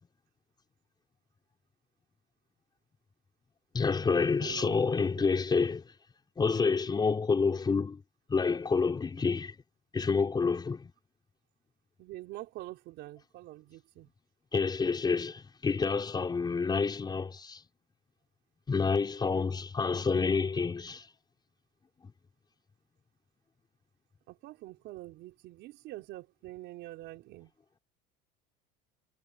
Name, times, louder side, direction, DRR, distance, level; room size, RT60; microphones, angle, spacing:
voice 1, 3.7-5.8 6.4-8.0 8.3-9.6 9.9-10.9 14.5-17.6 18.7-21.1, left 4 dB, 20° left, 5.0 m, -28 dB
voice 2, 4.4-4.8 5.1-5.3 12.0-14.1 24.3-27.5, right 17 dB, 60° right, 4.2 m, -45 dB
supercardioid pair, 120°, 20 cm